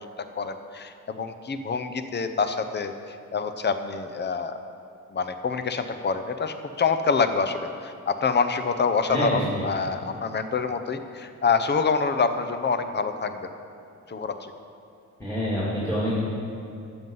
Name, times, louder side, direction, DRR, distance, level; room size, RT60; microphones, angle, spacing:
voice 1, 0.0-2.9 3.3-4.6 5.1-13.4 14.1-14.5, left 5 dB, 35° left, 9 dB, 0.7 m, -26 dB
voice 2, 15.2-16.2, equal, 10° left, -8 dB, 2.2 m, -26 dB
13.0 x 7.8 x 5.5 m, 2.7 s
wide cardioid pair, 145°, 32 cm